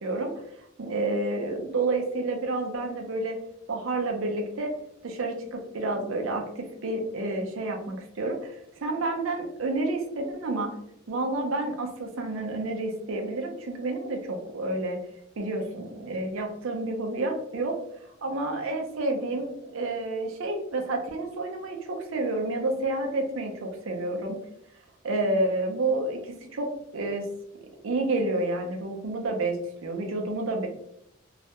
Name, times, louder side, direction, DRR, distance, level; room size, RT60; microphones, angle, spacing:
voice 1, 0.0-0.3 0.8-3.4 3.7-4.7 5.0-10.7 11.1-15.0 15.4-17.8 18.2-24.4 25.0-26.7 26.9-27.2 27.8-29.6 29.8-30.7, right 2 dB, 70° right, 3 dB, 0.5 m, -29 dB
2.3 x 2.1 x 2.8 m, 0.76 s
head